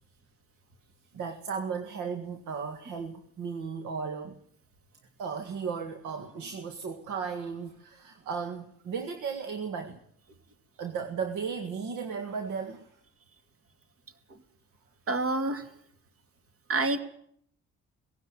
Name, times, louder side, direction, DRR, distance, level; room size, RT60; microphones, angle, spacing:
voice 1, 1.1-4.4 5.2-10.0 10.8-12.9, right 6 dB, 85° right, 6 dB, 1.9 m, -35 dB
voice 2, 15.1-15.7 16.7-17.0, right 2 dB, 50° right, 8 dB, 2.7 m, -27 dB
18.0 x 16.5 x 9.1 m, 0.66 s
cardioid pair, 90°, 30 cm